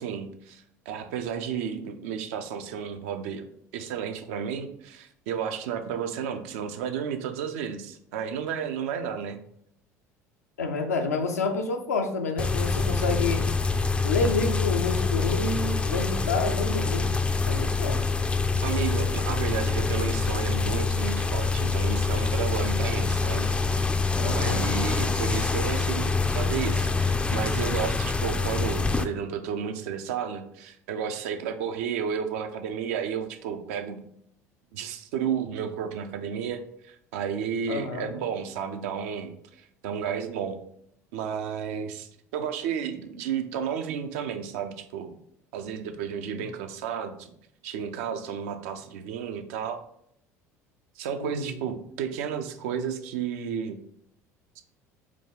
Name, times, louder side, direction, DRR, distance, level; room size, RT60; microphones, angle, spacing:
voice 1, 0.0-3.4 3.7-9.4 18.6-23.5 24.2-34.0 34.7-40.6 41.1-45.1 45.5-47.3 47.6-49.8 51.0-53.8 54.6-54.7, right 7 dB, 65° right, 7 dB, 0.5 m, -32 dB
voice 2, 10.6-13.5 14.0-17.1 17.5-18.1 24.2-24.6 37.7-38.1 46.3-46.4 51.2-51.5, left 3 dB, 80° left, 5 dB, 0.5 m, -29 dB
sound 1, 12.4-29.0, left 4 dB, 15° left, 0.3 m, -26 dB
4.7 x 2.2 x 3.6 m, 0.70 s
figure-of-eight pair, 65°, 8 cm